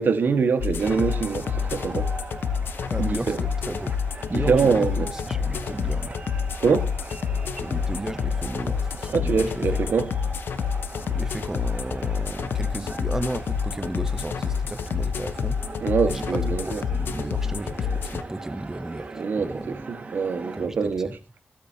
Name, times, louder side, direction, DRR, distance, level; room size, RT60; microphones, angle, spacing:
voice 1, 0.0-2.1 3.0-3.4 4.3-5.1 6.6-6.9 9.1-10.1 15.8-16.8 19.1-21.2, right 5 dB, 65° right, 1.8 m, -24 dB
sound 1, 0.6-18.2, left 6 dB, 75° left, 1.2 m, -28 dB
sound 2, 0.8-20.7, right 3 dB, 40° right, 2.0 m, -41 dB
voice 2, 2.9-3.9 4.3-6.2 7.5-10.0 11.1-15.6 16.0-16.4 16.6-19.8 20.6-20.8 21.0-21.1, right 1 dB, 15° right, 0.6 m, -34 dB
20.5 x 8.5 x 2.9 m
cardioid pair, 90°, 4 cm